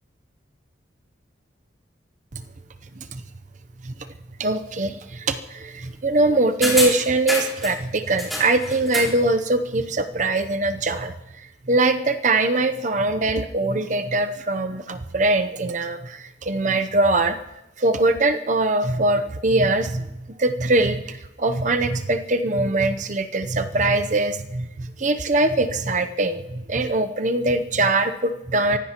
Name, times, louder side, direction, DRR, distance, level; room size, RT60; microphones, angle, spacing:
voice 1, 4.4-17.4 17.8-20.1 20.4-28.8, right 2 dB, 40° right, 8 dB, 0.7 m, -22 dB
sound 1, 6.6-7.8 8.2-9.2 9.5-9.6, left 1 dB, ahead, 3.9 m, -27 dB
24.5 x 16.0 x 3.0 m, 0.90 s
head